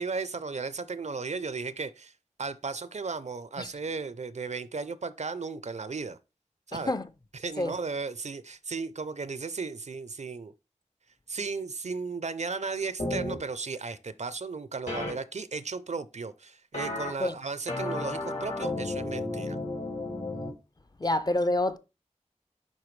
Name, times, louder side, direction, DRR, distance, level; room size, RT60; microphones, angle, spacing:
voice 1, 0.0-2.1 2.4-6.2 6.7-6.9 7.3-10.5 11.3-19.6, right 4 dB, 65° right, 0.5 m, -35 dB
voice 2, 6.7-7.0 7.6-7.7 17.2-17.3 21.0-21.8, left 1 dB, 35° left, 0.5 m, -27 dB
sound 1, 13.0-13.4 14.9-15.1 16.7-17.1 17.7-20.5, left 2 dB, 70° left, 2.5 m, -33 dB
9.9 x 3.8 x 3.2 m
wide cardioid pair, 60°, 12 cm